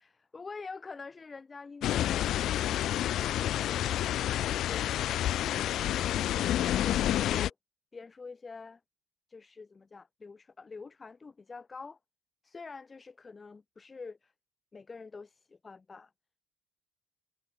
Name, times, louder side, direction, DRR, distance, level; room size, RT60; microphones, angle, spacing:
voice 1, 0.0-6.2 6.8-7.5 7.9-8.8 9.3-12.0 12.4-14.3 14.7-16.1, left 4 dB, 30° left, 6.4 m, -47 dB
sound 1, 1.8-7.5, left 12 dB, 60° left, 1.0 m, -29 dB
hypercardioid pair, 65°, 0 cm